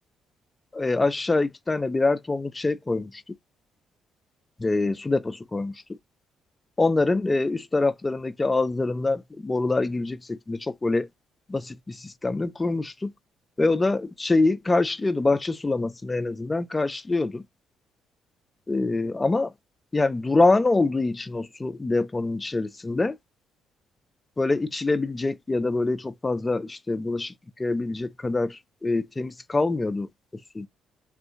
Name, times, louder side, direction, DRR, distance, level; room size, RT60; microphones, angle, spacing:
voice 1, 0.7-3.2 4.6-5.7 6.8-11.1 11.5-13.1 13.6-17.4 18.7-19.5 19.9-23.1 24.4-27.3 27.6-30.1 30.5-30.7, left 3 dB, 25° left, 0.4 m, -25 dB
3.4 x 2.5 x 2.5 m
hypercardioid pair, 45°, 0 cm